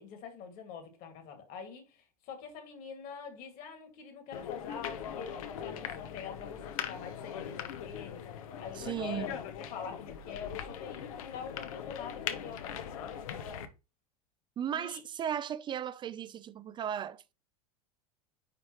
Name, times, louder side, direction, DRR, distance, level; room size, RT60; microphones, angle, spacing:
voice 1, 0.0-13.1 14.7-15.0, left 6 dB, 50° left, 2.1 m, -45 dB
sound 1, 4.3-13.7, left 9 dB, 65° left, 0.9 m, -40 dB
voice 2, 8.8-9.3 14.6-17.3, right 9 dB, 25° right, 0.4 m, -36 dB
9.7 x 3.3 x 3.0 m
hypercardioid pair, 90°, 19 cm